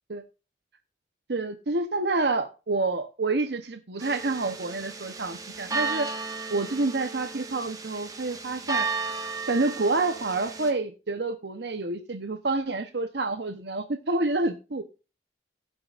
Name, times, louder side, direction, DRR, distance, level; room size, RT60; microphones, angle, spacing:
voice 1, 1.3-6.2 6.5-8.9 9.5-14.8, right 3 dB, 75° right, 8 dB, 0.9 m, -28 dB
sound 1, 4.0-10.7, right 4 dB, 20° right, 1.5 m, -34 dB
18.0 x 7.4 x 2.5 m, 0.32 s
head